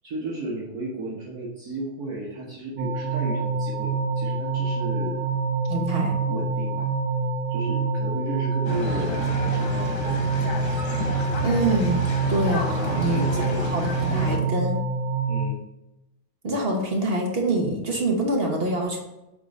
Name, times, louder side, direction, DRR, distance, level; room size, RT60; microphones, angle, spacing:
voice 1, 0.0-5.2 6.3-6.9 7.5-10.5 12.9-14.6 15.3-15.6, right 2 dB, 55° right, -5 dB, 1.6 m, -34 dB
sound 1, 2.8-15.5, right 4 dB, 85° right, 1.9 m, -26 dB
voice 2, 5.7-6.2 11.4-12.0 12.3-14.8 16.4-19.0, right 2 dB, 40° right, 1 dB, 1.0 m, -25 dB
sound 2, 8.7-14.4, left 4 dB, 60° left, 1.6 m, -31 dB
8.2 x 3.9 x 4.1 m, 0.93 s
omnidirectional pair, 2.1 m